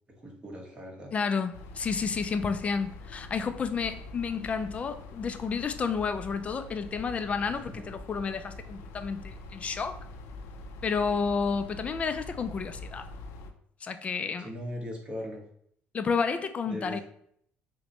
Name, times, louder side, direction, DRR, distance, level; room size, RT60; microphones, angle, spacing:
voice 1, 0.2-1.1 7.7-7.9 14.4-15.4 16.6-17.0, equal, 25° right, -1 dB, 1.2 m, -39 dB
voice 2, 1.1-10.0 10.8-13.1 13.8-14.5 15.9-17.0, left 5 dB, 30° left, 10 dB, 0.3 m, -31 dB
sound 1, 1.5-13.5, left 2 dB, 85° left, 0.5 m, -44 dB
5.8 x 2.2 x 2.9 m, 0.67 s
cardioid pair, 120°, 4 cm